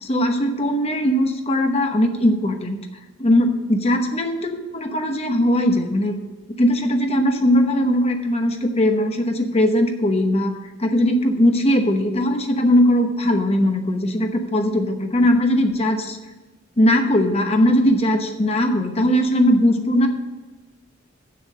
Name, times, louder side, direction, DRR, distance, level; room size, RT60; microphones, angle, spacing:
voice 1, 0.0-2.8 3.2-6.2 6.6-16.2 16.8-20.1, equal, 30° left, 5 dB, 1.0 m, -19 dB
7.3 x 6.7 x 7.5 m, 1.2 s
head